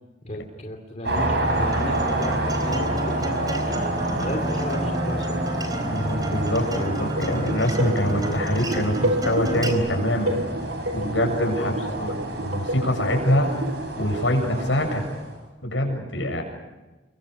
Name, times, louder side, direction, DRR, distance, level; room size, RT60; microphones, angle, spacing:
voice 1, 0.2-5.4 11.5-12.1, left 1 dB, 35° left, 3 dB, 2.6 m, -34 dB
sound 1, 1.0-15.3, right 1 dB, 60° right, 6.9 m, -29 dB
Acoustic guitar, 1.7-9.7, right 1 dB, 20° right, 4.1 m, -32 dB
voice 2, 5.8-10.4 10.9-13.5 14.0-15.0 15.6-16.4, equal, 80° left, 3 dB, 7.5 m, -24 dB
sound 2, 6.6-13.8, right 1 dB, 85° right, 4.3 m, -30 dB
29.5 x 24.0 x 6.6 m, 1.1 s
head